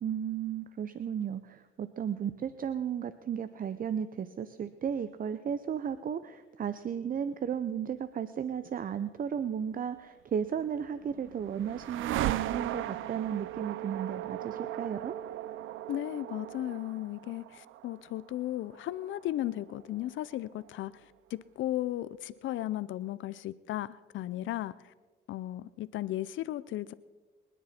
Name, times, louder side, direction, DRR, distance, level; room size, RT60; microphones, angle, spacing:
voice 1, 0.0-15.1, right 8 dB, 45° right, 13 dB, 0.7 m, -34 dB
sound 1, 10.6-20.7, right 13 dB, 80° right, 0.6 m, -38 dB
voice 2, 15.9-24.9 25.3-26.9, left 14 dB, 75° left, 16 dB, 0.5 m, -35 dB
26.0 x 10.0 x 4.3 m, 1.3 s
cardioid pair, 90°, 20 cm